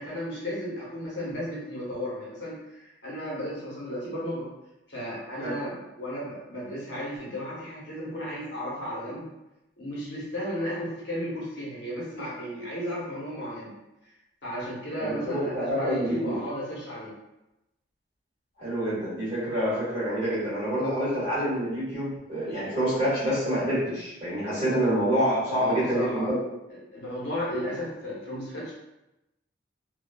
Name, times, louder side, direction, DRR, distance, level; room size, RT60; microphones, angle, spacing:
voice 1, 0.0-4.5 4.9-9.3 9.8-13.8 14.4-17.2 25.5-26.3 26.7-28.7, equal, 65° left, -7 dB, 0.9 m, -34 dB
voice 2, 15.0-16.4 18.6-26.4, equal, 35° right, -11 dB, 1.5 m, -27 dB
2.6 x 2.3 x 2.2 m, 0.93 s
head